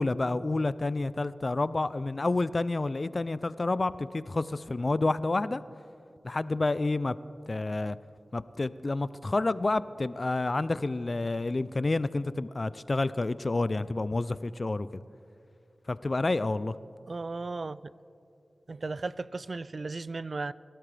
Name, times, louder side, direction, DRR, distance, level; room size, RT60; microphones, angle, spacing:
voice 1, 0.0-5.6 6.2-7.2 7.5-8.0 8.3-15.0 15.9-16.8, left 2 dB, 45° left, 16 dB, 0.4 m, -29 dB
voice 2, 17.1-17.9 18.7-20.5, right 3 dB, 60° right, 17 dB, 0.3 m, -35 dB
23.0 x 12.5 x 3.4 m, 2.7 s
cardioid pair, 50°, 0 cm